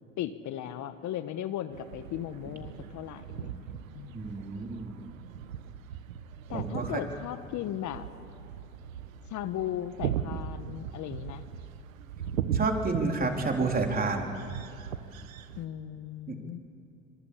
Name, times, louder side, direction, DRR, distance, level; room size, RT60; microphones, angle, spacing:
voice 1, 0.2-4.2 6.5-8.1 9.3-11.4 15.6-16.6, left 11 dB, 45° left, 11 dB, 1.4 m, -37 dB
sound 1, 1.7-15.7, right 8 dB, 85° right, 1.4 m, -38 dB
voice 2, 4.1-4.9 6.5-7.0 12.5-14.3 16.3-16.4, right 3 dB, 20° right, 2 dB, 3.8 m, -30 dB
26.0 x 23.0 x 8.5 m, 2.8 s
hypercardioid pair, 90°, 39 cm